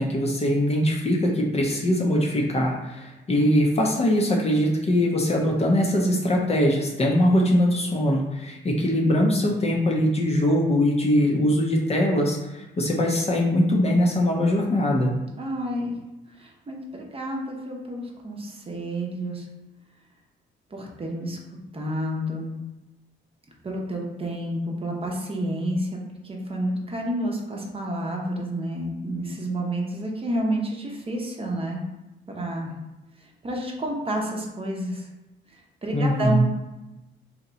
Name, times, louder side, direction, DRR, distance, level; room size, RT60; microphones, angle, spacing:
voice 1, 0.0-15.2 35.9-36.4, left 1 dB, 30° left, -1 dB, 0.6 m, -22 dB
voice 2, 15.4-16.0 16.3-19.5 20.7-21.4 21.7-22.5 23.6-26.0 26.2-31.8 32.3-32.8 33.2-35.1 35.5-36.5, right 1 dB, 30° right, -1 dB, 0.7 m, -30 dB
2.8 x 2.2 x 3.9 m, 1.0 s
cardioid pair, 90°, 20 cm